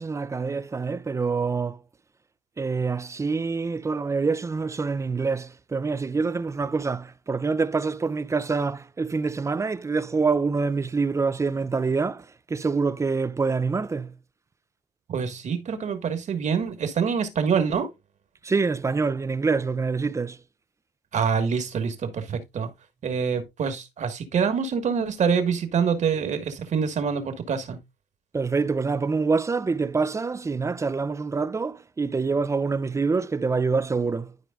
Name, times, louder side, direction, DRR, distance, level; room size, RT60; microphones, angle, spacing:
voice 1, 0.0-1.8 2.6-14.1 18.4-20.4 28.3-34.3, right 4 dB, 15° right, 0.5 m, -26 dB
voice 2, 15.1-17.9 21.1-22.7 23.0-27.8, right 6 dB, 45° right, 1.5 m, -26 dB
12.0 x 4.7 x 2.4 m
cardioid pair, 110°, 17 cm